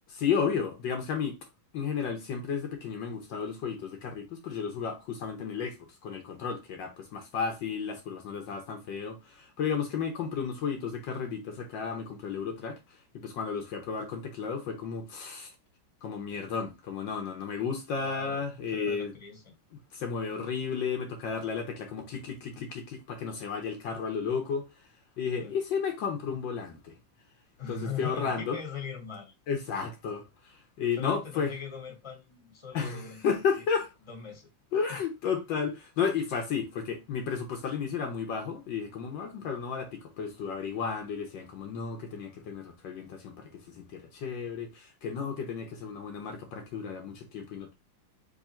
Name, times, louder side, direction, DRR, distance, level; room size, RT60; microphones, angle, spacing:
voice 1, 0.1-1.4 1.7-15.5 16.0-19.1 19.9-24.7 25.2-26.9 27.7-28.6 29.5-31.5 32.7-33.9 34.7-47.7, left 6 dB, 70° left, 1.5 m, -33 dB
voice 2, 17.9-18.4 18.7-19.4 25.4-25.5 27.6-29.3 31.0-33.2 34.1-34.5 34.9-35.0, left 6 dB, 15° left, 1.3 m, -40 dB
3.7 x 3.4 x 4.2 m
omnidirectional pair, 2.2 m